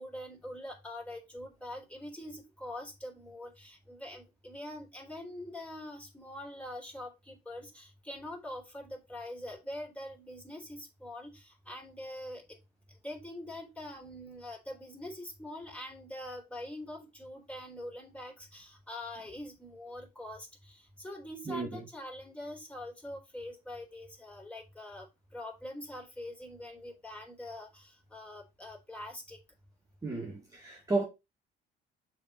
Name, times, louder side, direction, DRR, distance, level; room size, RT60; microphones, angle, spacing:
voice 1, 0.0-12.4 13.0-25.1 25.3-29.4, left 1 dB, 5° left, 3.2 m, -44 dB
voice 2, 21.5-21.8 30.0-31.0, right 3 dB, 20° right, 2.0 m, -33 dB
6.7 x 3.7 x 5.4 m
cardioid pair, 110°, 17 cm